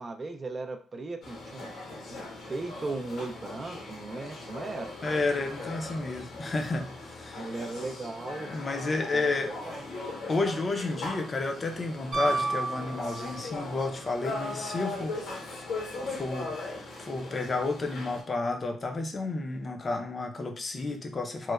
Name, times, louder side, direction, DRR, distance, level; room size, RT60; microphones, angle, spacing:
voice 1, 0.0-2.2 2.5-4.9 7.3-8.5 8.9-9.9, right 3 dB, 30° right, 5 dB, 0.3 m, -37 dB
sound 1, 1.2-18.2, left 2 dB, 80° left, 0.9 m, -39 dB
voice 2, 5.0-7.5 8.5-9.5 10.3-15.1 16.0-21.5, left 3 dB, 35° left, 4 dB, 0.5 m, -31 dB
Piano, 12.1-13.7 16.1-16.2, right 3 dB, 65° right, 0.8 m, -31 dB
3.0 x 2.1 x 2.3 m, 0.40 s
cardioid pair, 90°, 0 cm